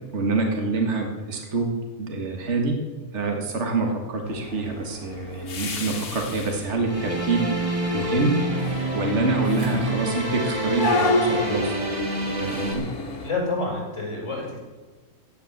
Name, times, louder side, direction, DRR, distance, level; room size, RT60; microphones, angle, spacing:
voice 1, 0.1-1.7 2.0-2.8 3.1-7.5 7.9-8.4 8.9-11.7 12.4-12.9, right 3 dB, 50° right, 2 dB, 2.0 m, -26 dB
sound 1, 4.2-13.3, left 2 dB, 85° left, 2.1 m, -31 dB
sound 2, 6.9-12.7, equal, 20° right, 2.1 m, -27 dB
voice 2, 13.0-14.6, left 3 dB, 55° left, -2 dB, 5.9 m, -29 dB
16.0 x 9.4 x 7.4 m, 1.3 s
omnidirectional pair, 1.5 m